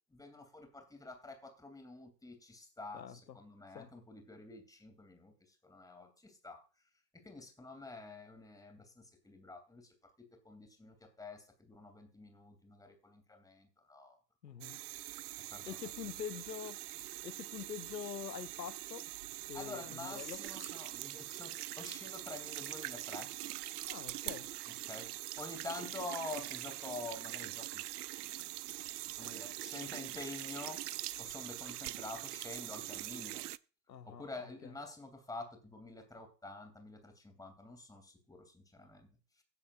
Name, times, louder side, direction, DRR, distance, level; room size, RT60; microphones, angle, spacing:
voice 1, 0.1-6.6 7.1-14.2 14.5-14.6 15.5-15.8 16.0-16.1 19.5-23.3 24.7-27.8 29.0-30.9 31.2-33.5 34.0-39.1, left 2 dB, 5° left, 2.8 m, -48 dB
voice 2, 2.9-3.4 3.7-3.9 14.4-14.8 15.7-16.8 17.2-19.0 19.5-20.4 23.9-24.5 33.9-34.3 34.6-34.7, left 8 dB, 85° left, 0.9 m, -45 dB
sound 1, 14.6-33.6, right 16 dB, 65° right, 0.6 m, -43 dB
17.0 x 10.5 x 2.5 m
figure-of-eight pair, 85°, 50 cm